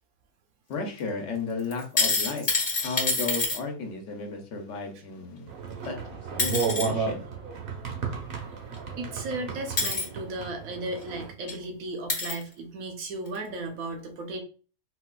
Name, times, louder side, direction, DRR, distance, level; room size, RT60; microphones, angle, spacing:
voice 1, 0.7-2.5 2.8-5.5 5.8-6.0 6.4-7.3, left 3 dB, 65° left, 3 dB, 1.0 m, -34 dB
sound 1, 1.7-3.6 5.8-5.9 6.4-6.9 8.7-8.8 9.8-10.1 11.0-11.1 11.5-11.6 12.1-12.4 13.3-13.4, left 3 dB, 40° left, 0.9 m, -26 dB
sound 2, 5.5-11.3, right 5 dB, 50° right, 0.7 m, -33 dB
voice 2, 9.0-14.4, right 2 dB, 80° right, 3 dB, 1.1 m, -35 dB
4.0 x 2.3 x 2.2 m, 0.38 s
omnidirectional pair, 1.5 m